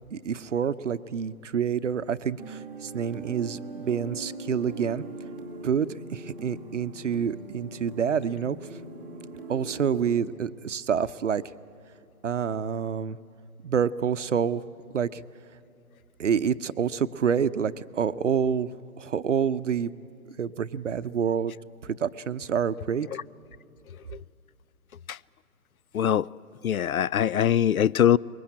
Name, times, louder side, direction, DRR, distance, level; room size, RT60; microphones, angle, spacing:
voice 1, 0.1-5.0 5.6-8.6 9.5-11.4 12.2-13.2 13.6-14.6 14.9-15.2 16.2-18.7 19.0-19.9 20.3-21.6 21.8-23.1, right 7 dB, 55° right, 0.7 m, -27 dB
sound 1, 2.4-10.2, right 2 dB, ahead, 0.7 m, -41 dB
voice 2, 25.9-26.3 26.6-28.2, left 10 dB, 70° left, 0.5 m, -22 dB
23.5 x 21.5 x 8.6 m
figure-of-eight pair, 150°, 45 cm